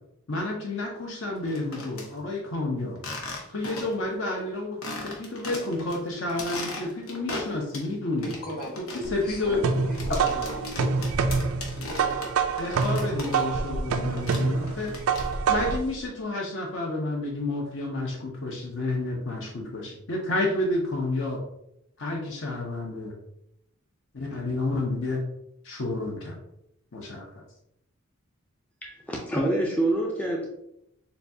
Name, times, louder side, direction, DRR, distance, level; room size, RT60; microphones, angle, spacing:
voice 1, 0.3-3.0 3.5-8.3 8.7-8.9 9.1-9.6 10.1-10.2 12.6-14.9 15.5-21.4 22.0-23.1 24.1-25.2 25.6-26.4 26.9-27.4, left 2 dB, 60° left, -1 dB, 0.7 m, -30 dB
sound 1, 1.4-2.1 3.0-4.1 4.4-4.5 4.8-6.0 6.3-7.9 8.2-13.7 14.0-15.6, left 2 dB, 80° left, 1.0 m, -37 dB
voice 2, 8.2-10.8, equal, 45° left, -2 dB, 1.4 m, -37 dB
sound 2, 9.0-15.9, right 5 dB, 85° right, 0.4 m, -26 dB
voice 3, 28.8-30.5, right 1 dB, 5° left, -2 dB, 0.4 m, -26 dB
6.7 x 2.3 x 2.7 m, 0.79 s
head